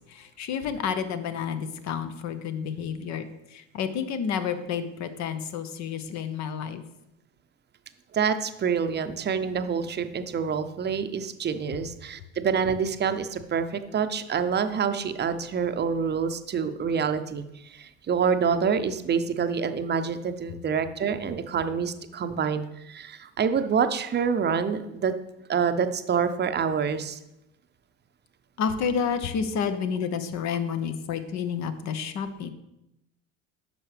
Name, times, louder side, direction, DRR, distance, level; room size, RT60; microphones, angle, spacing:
voice 1, 0.0-6.8 28.6-32.5, left 7 dB, 50° left, 10 dB, 0.9 m, -30 dB
voice 2, 8.1-25.1 25.5-27.2, right 6 dB, 30° right, 9 dB, 0.7 m, -27 dB
9.9 x 6.1 x 3.4 m, 0.88 s
hypercardioid pair, 65°, 36 cm